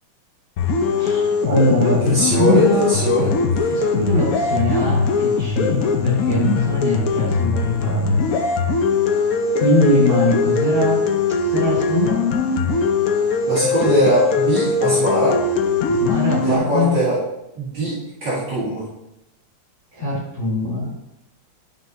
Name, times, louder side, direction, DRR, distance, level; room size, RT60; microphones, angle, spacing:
sound 1, 0.6-16.6, left 4 dB, 75° left, 0.8 m, -20 dB
voice 1, 1.0-3.0 3.7-8.3 9.5-11.1 11.4-12.3 15.9-17.0 19.9-20.9, left 1 dB, 30° right, -7 dB, 3.5 m, -21 dB
voice 2, 2.0-3.3 13.5-15.4 16.4-17.2 17.6-18.8, right 1 dB, 60° right, -9 dB, 2.5 m, -21 dB
11.5 x 5.3 x 2.7 m, 0.88 s
omnidirectional pair, 2.3 m